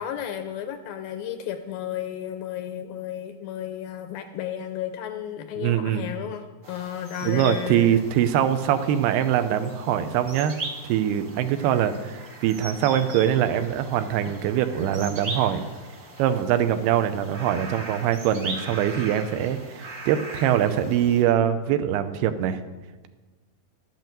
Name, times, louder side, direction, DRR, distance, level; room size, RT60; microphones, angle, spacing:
voice 1, 0.0-8.0 14.3-14.4, left 10 dB, 85° left, 7 dB, 2.2 m, -33 dB
voice 2, 5.6-6.1 7.2-10.6 10.8-15.6 16.2-22.6, right 10 dB, 90° right, 10 dB, 2.7 m, -23 dB
sound 1, 6.6-21.2, right 2 dB, 70° right, 0.8 m, -40 dB
12.0 x 8.1 x 7.5 m, 1.2 s
omnidirectional pair, 4.6 m